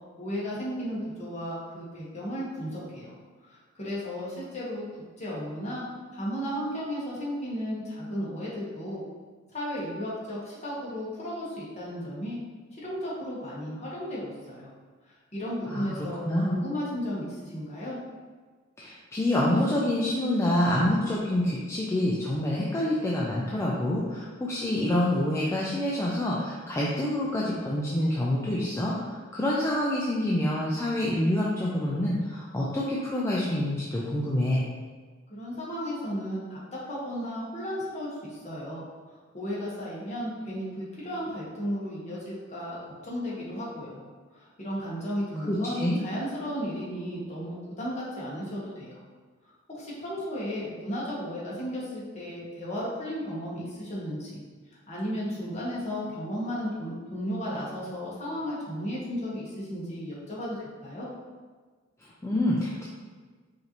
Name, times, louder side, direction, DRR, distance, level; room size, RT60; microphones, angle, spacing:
voice 1, 0.2-3.1 3.4-4.8 5.2-5.8 6.1-9.0 9.5-12.4 12.8-14.7 15.0-18.0 35.3-36.6 36.9-38.8 39.3-44.0 44.3-49.0 49.7-54.4 54.9-61.1, equal, 35° left, -7 dB, 1.2 m, -34 dB
voice 2, 16.2-16.6 18.8-34.6 45.5-46.0 62.2-62.8, left 1 dB, 15° left, -6 dB, 0.4 m, -27 dB
4.9 x 2.7 x 2.9 m, 1.4 s
head